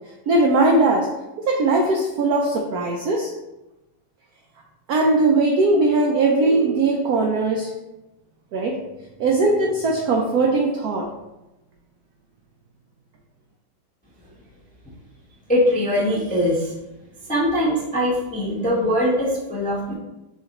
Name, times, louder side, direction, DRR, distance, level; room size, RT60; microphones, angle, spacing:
voice 1, 0.3-1.1 1.4-3.3 4.9-7.7 8.5-8.8 9.2-11.1, right 2 dB, 80° right, 0 dB, 0.8 m, -19 dB
voice 2, 15.5-16.7 17.3-19.9, equal, 10° left, -7 dB, 0.5 m, -21 dB
6.6 x 2.5 x 2.9 m, 0.99 s
omnidirectional pair, 2.2 m